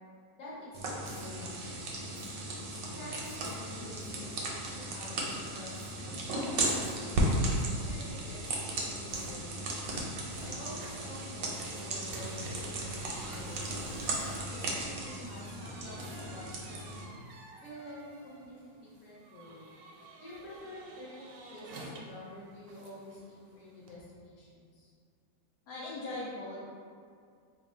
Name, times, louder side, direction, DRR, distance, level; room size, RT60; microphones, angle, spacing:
voice 1, 0.4-2.1 2.7-6.5 7.0-9.6 10.4-13.9 14.5-16.9 17.6-19.6 20.2-24.9, left 1 dB, 55° left, -7 dB, 1.3 m, -48 dB
sound 1, 0.7-17.0, right 1 dB, 65° right, 0.9 m, -35 dB
Fire, 1.0-1.3 2.1-2.3 3.2-3.5 4.0-4.1 4.6-5.1 5.7-5.9 6.6-7.0 7.4-7.5 8.6-11.1 12.0-14.8, equal, 15° left, 0.5 m, -48 dB
sound 2, 10.6-24.0, right 2 dB, 85° right, 1.2 m, -51 dB
voice 2, 25.7-26.6, left 2 dB, 70° left, -7 dB, 1.1 m, -39 dB
3.1 x 2.2 x 4.3 m, 2.2 s
omnidirectional pair, 1.9 m